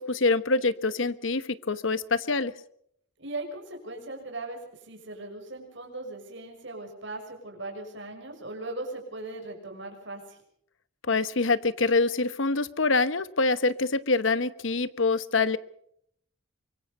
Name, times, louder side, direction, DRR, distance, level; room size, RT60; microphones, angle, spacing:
voice 1, 0.0-2.5 11.1-15.6, left 3 dB, 65° left, 15 dB, 1.1 m, -25 dB
voice 2, 3.2-10.4, right 2 dB, 60° right, 3 dB, 6.2 m, -39 dB
24.5 x 23.0 x 5.4 m, 0.70 s
head